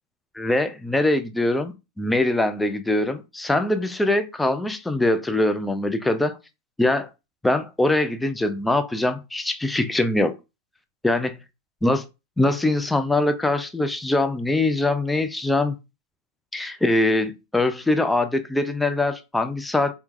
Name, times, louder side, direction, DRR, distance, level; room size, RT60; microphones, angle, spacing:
voice 1, 0.4-6.4 6.8-7.1 7.4-10.4 11.0-11.4 11.8-12.0 12.4-15.8 16.5-19.9, left 2 dB, 5° left, 0.4 m, -22 dB
4.4 x 2.2 x 2.4 m
figure-of-eight pair, 90°, 0 cm